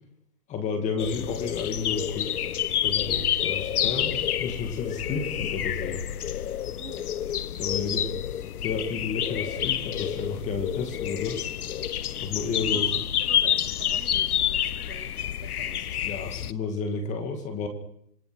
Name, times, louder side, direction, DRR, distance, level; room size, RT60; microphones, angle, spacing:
voice 1, 0.5-2.3 2.8-6.0 7.5-8.1 8.6-11.4 12.2-12.9 16.0-17.7, left 4 dB, 15° left, 5 dB, 2.3 m, -31 dB
sound 1, 1.0-16.5, left 10 dB, 60° left, 1.0 m, -28 dB
voice 2, 6.7-7.1 7.8-8.0 12.6-15.9, right 7 dB, 65° right, 4 dB, 4.2 m, -47 dB
26.5 x 23.5 x 6.4 m, 0.77 s
hypercardioid pair, 160°, 49 cm